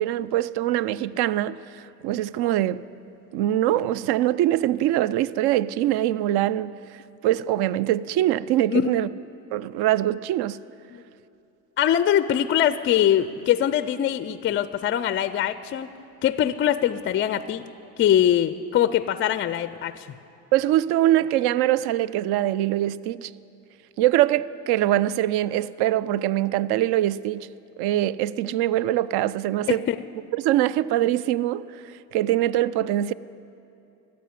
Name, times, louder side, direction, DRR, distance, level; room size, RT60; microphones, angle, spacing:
voice 1, 0.0-2.8 3.3-9.1 9.5-10.6 20.5-23.3 24.0-27.5 27.8-29.8 30.3-33.1, right 13 dB, 55° right, 0.5 m, -23 dB
voice 2, 8.7-9.1 10.9-11.0 11.8-15.9 16.2-17.6 18.0-20.1 29.7-30.0, left 10 dB, 30° left, 0.4 m, -22 dB
14.5 x 7.6 x 9.6 m
hypercardioid pair, 70°, 46 cm